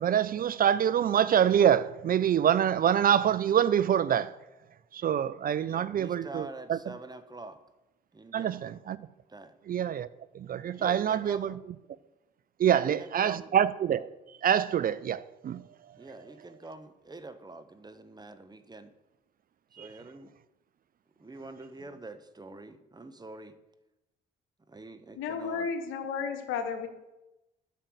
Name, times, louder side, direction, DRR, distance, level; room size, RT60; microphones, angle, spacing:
voice 1, 0.0-4.3 4.9-6.8 8.3-9.0 9.7-10.1 10.3-11.5 12.6-14.1 14.4-15.6 19.8-19.9, right 9 dB, 45° right, 0.5 m, -25 dB
voice 2, 5.7-7.6 8.1-8.6 9.3-9.6 10.8-11.6 12.6-13.5 16.0-18.9 19.7-20.3 21.2-23.6 24.7-25.7, right 2 dB, 20° right, 1.2 m, -45 dB
voice 3, 25.1-26.9, left 6 dB, 70° left, 1.3 m, -33 dB
9.2 x 6.6 x 7.9 m
hypercardioid pair, 45°, 21 cm